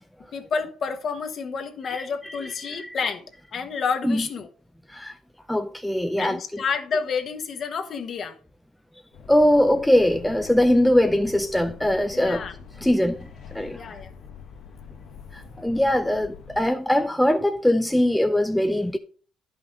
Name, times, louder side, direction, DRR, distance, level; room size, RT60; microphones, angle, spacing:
voice 1, 0.3-3.2 3.5-4.5 6.2-8.4 12.1-12.5 13.7-14.1, left 5 dB, 40° left, 1.2 m, -29 dB
voice 2, 1.8-3.0 4.0-4.2 4.9-5.1 5.5-6.4 9.3-12.4 12.8-13.8 15.3-19.0, left 1 dB, 5° left, 0.5 m, -22 dB
sound 1, 9.1-16.7, left 6 dB, 60° left, 1.1 m, -44 dB
11.0 x 5.6 x 3.9 m
cardioid pair, 130°, 0 cm